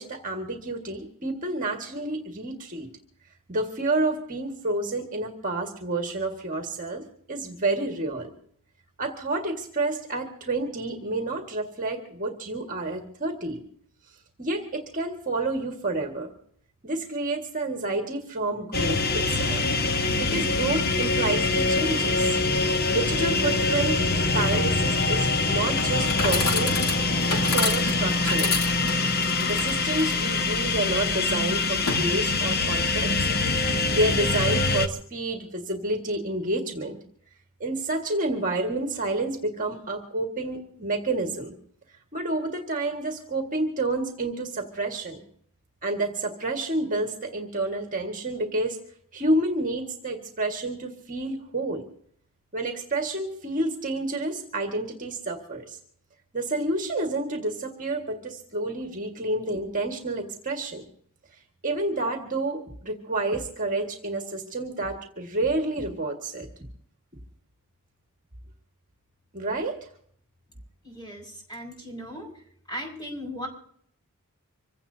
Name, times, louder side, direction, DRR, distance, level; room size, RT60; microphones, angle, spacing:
voice 1, 0.0-2.9 3.5-8.3 9.0-13.6 14.4-16.3 16.8-19.6 20.2-22.4 22.9-24.0 24.3-26.8 27.3-28.5 29.4-33.3 33.9-37.0 37.6-41.5 42.1-45.2 45.8-48.8 49.1-51.8 52.5-55.8 56.3-60.9 61.6-66.5 69.3-69.8, right 2 dB, 35° right, 4 dB, 1.8 m, -29 dB
sound 1, 18.7-34.9, left 3 dB, 45° left, 0.9 m, -24 dB
Chatter / Coin (dropping), 25.6-32.6, left 3 dB, 80° left, 3.0 m, -31 dB
voice 2, 70.8-72.4 72.7-73.5, equal, 20° left, 1 dB, 5.8 m, -37 dB
26.0 x 16.5 x 2.8 m, 0.63 s
head